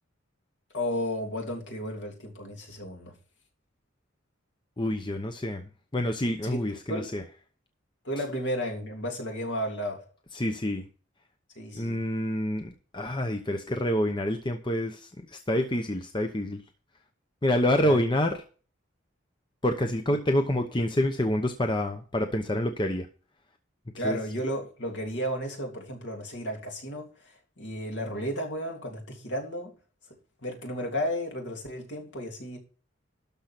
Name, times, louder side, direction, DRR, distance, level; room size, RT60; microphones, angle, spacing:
voice 1, 0.7-3.1 6.4-6.6 6.9-7.1 8.0-10.0 11.6-12.0 17.8-18.0 24.0-27.1 27.6-29.7 30.4-32.6, equal, 65° left, 1 dB, 3.0 m, -33 dB
voice 2, 4.8-5.6 5.9-7.2 10.3-10.8 11.7-16.6 17.4-18.4 19.6-23.1 24.0-24.2, left 1 dB, 25° left, 5 dB, 0.8 m, -27 dB
12.5 x 5.1 x 5.9 m, 0.38 s
head